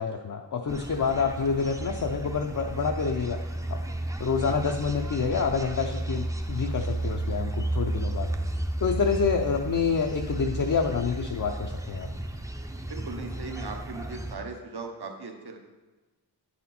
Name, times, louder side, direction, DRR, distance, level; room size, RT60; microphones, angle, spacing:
voice 1, 0.0-3.4 3.7-3.8 4.2-8.3 8.8-12.1, left 5 dB, 55° left, 3 dB, 0.5 m, -27 dB
sound 1, 0.7-14.4, right 1 dB, 10° right, 0.5 m, -33 dB
voice 2, 12.8-15.6, right 4 dB, 70° right, 3 dB, 1.0 m, -38 dB
9.0 x 4.2 x 4.2 m, 1.2 s
wide cardioid pair, 70°, 40 cm